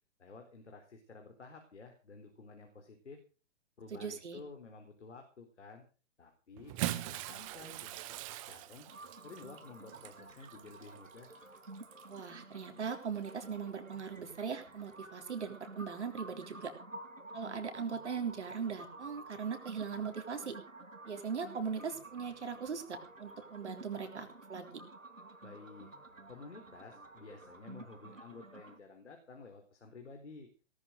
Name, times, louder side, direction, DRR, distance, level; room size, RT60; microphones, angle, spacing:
voice 1, 0.2-3.2 3.8-5.9 6.2-8.0 8.3-8.9 9.2-11.3 25.4-25.9 26.3-30.5, left 4 dB, 65° left, 4 dB, 4.0 m, -52 dB
voice 2, 3.9-4.4 12.1-16.7 17.3-20.6 21.1-24.8, right 6 dB, 60° right, 6 dB, 3.7 m, -39 dB
Bathtub (filling or washing) / Splash splatter, 6.6-12.2 13.1-13.3 14.8-14.9, right 15 dB, 25° right, 1.2 m, -42 dB
sound 1, 8.9-28.8, right 2 dB, 90° right, 2.2 m, -51 dB
18.0 x 12.5 x 5.1 m, 0.37 s
figure-of-eight pair, 120°, 38 cm